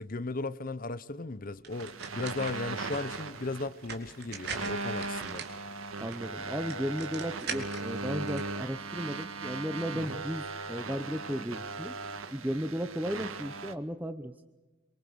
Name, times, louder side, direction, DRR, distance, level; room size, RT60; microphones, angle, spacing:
voice 1, 0.0-5.5 9.9-10.2, left 3 dB, 40° left, 0.8 m, -36 dB
sound 1, 1.6-8.4, right 5 dB, 50° right, 3.8 m, -43 dB
sound 2, 1.7-13.7, right 3 dB, 85° right, 1.7 m, -38 dB
sound 3, 2.4-3.5 5.0-6.1 7.7-8.8, left 3 dB, 80° left, 5.4 m, -54 dB
voice 2, 6.0-11.9 12.3-14.3, equal, 10° right, 0.8 m, -35 dB
26.5 x 24.0 x 7.0 m
head